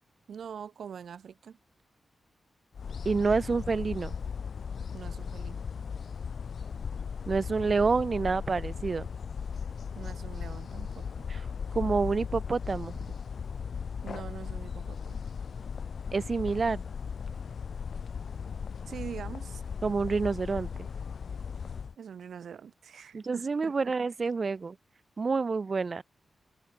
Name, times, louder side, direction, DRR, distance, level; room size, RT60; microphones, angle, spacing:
voice 1, 0.3-1.6 4.9-5.6 9.9-11.3 14.0-15.2 18.9-19.6 22.0-23.9, right 7 dB, 85° right, 2.0 m, -43 dB
sound 1, 2.7-21.9, left 6 dB, 65° left, 0.5 m, -37 dB
voice 2, 3.0-4.1 7.3-9.1 11.3-11.5 11.7-13.0 16.1-16.8 19.8-20.9 23.1-24.8 25.2-26.0, right 4 dB, 45° right, 1.2 m, -28 dB
wide cardioid pair, 105°, 0 cm